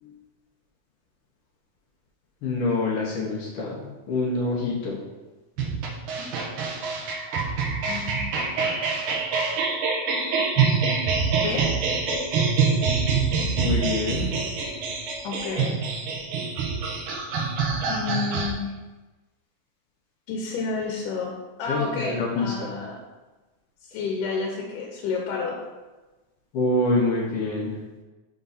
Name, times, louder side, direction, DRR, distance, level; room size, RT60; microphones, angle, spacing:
voice 1, 2.4-5.0 13.6-14.3 21.7-22.7 26.5-27.8, left 2 dB, 70° left, -3 dB, 1.4 m, -26 dB
sound 1, 5.6-18.5, right 5 dB, 90° right, 1.2 m, -25 dB
voice 2, 7.9-8.3 11.4-11.7 15.2-15.8 17.8-18.7 20.3-23.0 23.8-25.6, left 4 dB, 90° left, 0 dB, 2.3 m, -30 dB
5.3 x 3.6 x 5.5 m, 1.2 s
omnidirectional pair, 3.6 m